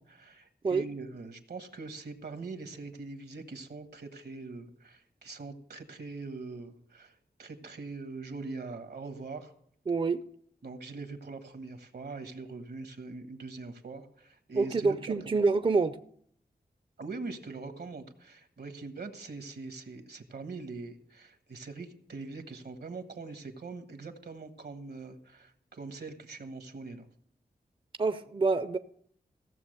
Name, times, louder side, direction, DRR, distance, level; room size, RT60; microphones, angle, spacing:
voice 1, 0.0-9.5 10.6-15.1 17.0-27.1, right 3 dB, 80° right, 1.4 m, -42 dB
voice 2, 9.9-10.2 14.5-16.0 28.0-28.8, right 4 dB, 30° right, 0.5 m, -27 dB
16.0 x 7.1 x 6.6 m
wide cardioid pair, 85°, 17 cm